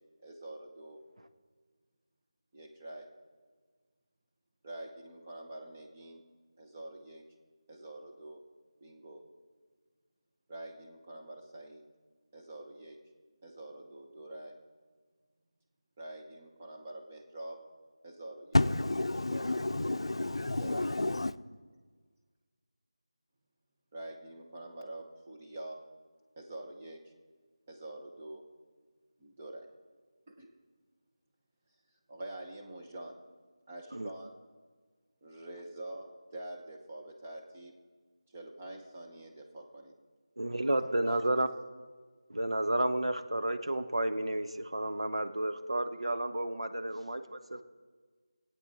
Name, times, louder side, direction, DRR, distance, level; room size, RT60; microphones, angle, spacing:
voice 1, 0.2-1.0 2.5-3.1 4.6-6.2 6.6-7.2 7.7-8.4 8.8-9.2 10.5-11.8 12.3-13.0 13.4-14.6 16.0-17.6 18.0-18.7 19.2-19.9 20.6-20.9 23.9-25.8 26.4-27.0 27.7-28.4 29.2-29.7 30.3-30.5 32.1-33.2 33.7-34.3 35.2-37.7 38.3-39.9 41.0-41.2, right 1 dB, 20° right, 1 dB, 0.8 m, -46 dB
voice 2, 18.5-21.3, left 2 dB, 75° left, 12 dB, 0.5 m, -30 dB
voice 3, 40.4-41.5 42.3-47.6, right 1 dB, 90° right, 8 dB, 0.9 m, -31 dB
19.0 x 8.7 x 4.1 m, 1.5 s
figure-of-eight pair, 175°, 3 cm